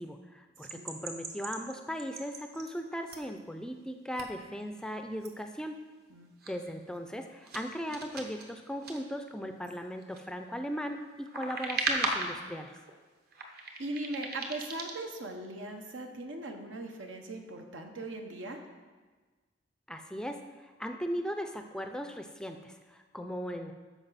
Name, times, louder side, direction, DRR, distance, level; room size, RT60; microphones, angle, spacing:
voice 1, 0.0-5.8 6.5-12.8 19.9-20.4 20.6-23.7, equal, 5° left, 6 dB, 0.4 m, -38 dB
sound 1, 0.7-2.7 3.0-3.4 4.1-4.3 4.6-4.7 5.2-5.3 6.4-6.5 6.9-7.1 7.4-9.0 9.6-10.2 10.9-12.4 12.7-12.9 13.3-15.0, right 3 dB, 55° right, 1.0 m, -37 dB
voice 2, 13.8-18.6, right 2 dB, 85° right, 3 dB, 1.1 m, -39 dB
13.0 x 5.0 x 4.1 m, 1.4 s
head